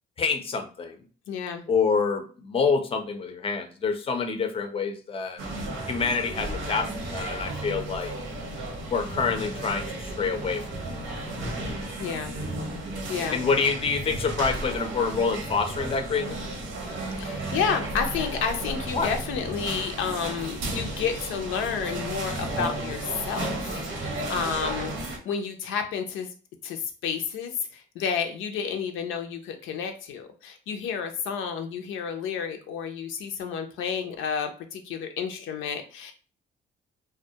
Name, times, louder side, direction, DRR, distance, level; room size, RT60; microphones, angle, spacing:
voice 1, 0.2-1.0 1.7-5.4 5.9-8.1 8.9-10.6 10.9-11.0 13.3-16.5 18.9-19.1, left 5 dB, 30° left, 5 dB, 0.5 m, -27 dB
voice 2, 1.3-1.7 12.0-12.3 13.1-13.4 17.2-26.3 26.6-36.1, left 6 dB, 85° left, 6 dB, 0.4 m, -31 dB
sound 1, 5.4-25.2, right 2 dB, 80° right, 0.8 m, -33 dB
2.2 x 2.0 x 2.7 m, 0.38 s
cardioid pair, 90°, 20 cm